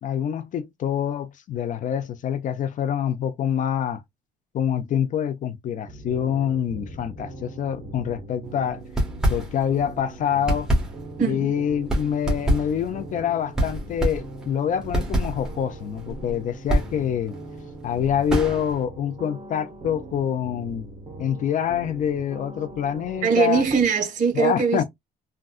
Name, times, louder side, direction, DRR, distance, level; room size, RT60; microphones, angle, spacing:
voice 1, 0.0-4.0 4.5-8.8 9.3-10.7 11.2-17.4 17.8-20.9 21.2-23.6 24.3-24.8, left 9 dB, 50° left, 0.5 m, -26 dB
sound 1, 5.9-23.9, right 2 dB, 30° right, 1.2 m, -41 dB
sound 2, 8.8-9.9 10.2-18.9, equal, 5° right, 1.4 m, -27 dB
voice 2, 23.2-24.8, right 5 dB, 50° right, 1.6 m, -21 dB
3.7 x 2.2 x 2.4 m
cardioid pair, 110°, 17 cm